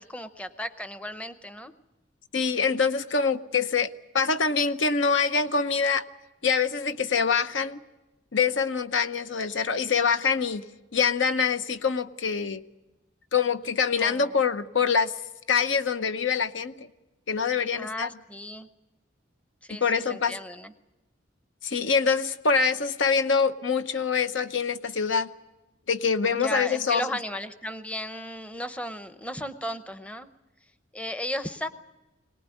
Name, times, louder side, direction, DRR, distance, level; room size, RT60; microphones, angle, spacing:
voice 1, 0.0-1.7 14.0-14.3 17.7-18.7 19.6-20.7 26.3-30.3 30.9-31.7, left 1 dB, 5° left, 11 dB, 0.7 m, -35 dB
voice 2, 2.3-6.0 6.4-7.8 8.3-10.7 10.9-12.6 13.3-15.1 15.5-16.9 17.3-18.1 19.7-20.4 21.6-25.3 25.9-27.0, left 5 dB, 75° left, 11 dB, 0.9 m, -25 dB
22.5 x 19.0 x 9.2 m, 1.1 s
head